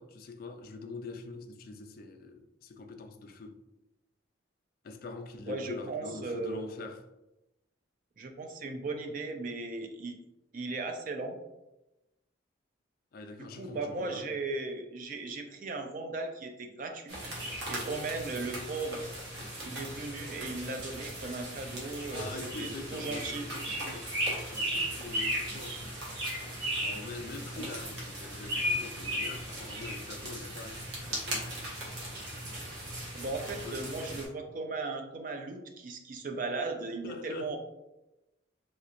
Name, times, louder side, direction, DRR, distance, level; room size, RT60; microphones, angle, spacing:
voice 1, 0.0-3.6 4.8-7.1 13.1-14.2 22.1-24.1 24.4-25.8 26.8-31.5 33.6-33.8 36.8-37.6, left 3 dB, 50° left, 0.3 m, -44 dB
voice 2, 5.5-6.6 8.2-10.2 10.5-11.4 13.4-17.2 17.6-19.1 19.6-23.5 33.1-37.6, right 3 dB, 45° right, 0.4 m, -37 dB
sound 1, 17.1-34.2, equal, 60° right, 1.0 m, -37 dB
3.1 x 2.9 x 2.5 m
head